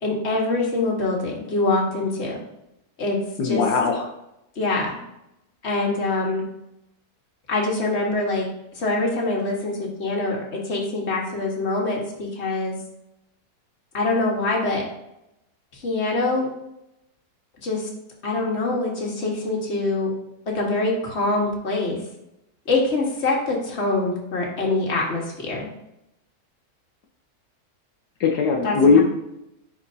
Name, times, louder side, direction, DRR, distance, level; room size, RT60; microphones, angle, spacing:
voice 1, 0.0-2.4 3.0-3.2 3.4-3.6 4.5-5.0 5.6-6.4 7.5-8.5 8.8-12.7 13.9-14.8 15.8-16.5 17.6-17.9 18.2-20.1 20.5-22.0 22.6-25.7 28.6-29.0, left 2 dB, 45° left, -2 dB, 1.7 m, -24 dB
voice 2, 3.4-4.0 28.2-29.0, left 5 dB, 85° left, 2 dB, 1.4 m, -18 dB
9.9 x 4.4 x 2.7 m, 0.85 s
omnidirectional pair, 1.7 m